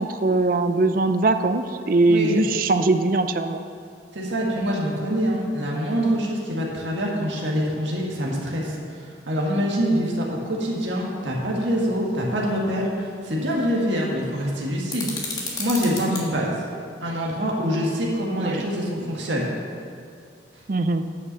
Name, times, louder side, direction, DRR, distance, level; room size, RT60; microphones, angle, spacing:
voice 1, 0.0-3.6 18.4-18.6 20.7-21.0, right 2 dB, 45° right, 9 dB, 0.5 m, -21 dB
voice 2, 2.1-2.4 4.1-15.1 15.6-16.5 17.0-19.5, equal, 80° right, -3 dB, 1.9 m, -25 dB
sound 1, 14.9-16.2, left 3 dB, 20° left, 1.4 m, -31 dB
9.8 x 5.9 x 6.8 m, 2.3 s
head